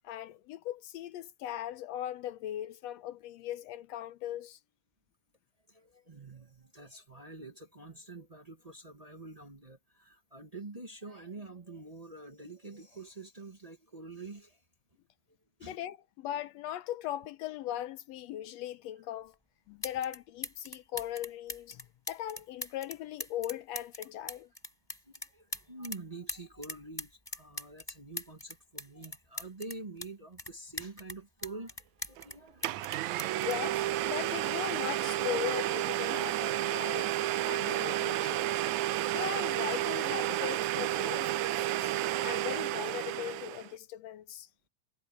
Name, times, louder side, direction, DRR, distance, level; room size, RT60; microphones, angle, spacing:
voice 1, 0.0-4.6 15.6-19.3 19.7-24.5 33.4-37.2 37.5-38.5 39.1-41.9 42.2-44.5, left 12 dB, 80° left, 1.6 m, -39 dB
voice 2, 5.7-14.6 15.6-15.8 25.0-33.2, right 3 dB, 35° right, 0.6 m, -47 dB
sound 1, 19.3-19.4 19.8-20.2 20.4-26.0 26.3-30.1 30.4-32.4 32.6-34.5 35.4-35.6, left 1 dB, 5° left, 4.8 m, -41 dB
Domestic sounds home sounds, 32.2-32.3 32.6-43.7, right 14 dB, 80° right, 2.0 m, -31 dB
omnidirectional pair, 3.4 m